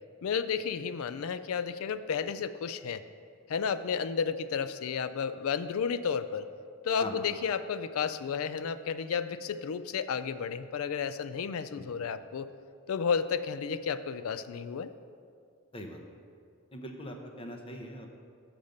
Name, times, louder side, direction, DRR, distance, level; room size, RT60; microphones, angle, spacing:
voice 1, 0.2-3.0 3.5-6.5 6.8-12.5 12.9-14.9, left 6 dB, 75° left, 13 dB, 0.4 m, -32 dB
voice 2, 16.7-18.1, left 1 dB, 25° left, 3 dB, 0.7 m, -41 dB
7.2 x 5.2 x 6.5 m, 2.3 s
head